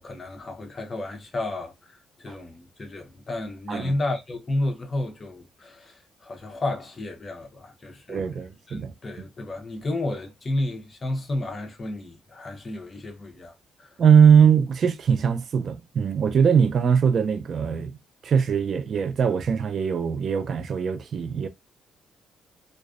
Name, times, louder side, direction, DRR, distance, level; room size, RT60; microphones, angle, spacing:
voice 1, 0.0-8.3 8.7-13.9, left 2 dB, 35° left, 0.7 m, -32 dB
voice 2, 8.1-8.9 14.0-18.0 18.2-21.5, right 7 dB, 55° right, 0.4 m, -21 dB
2.4 x 2.1 x 2.4 m
cardioid pair, 90°, 0 cm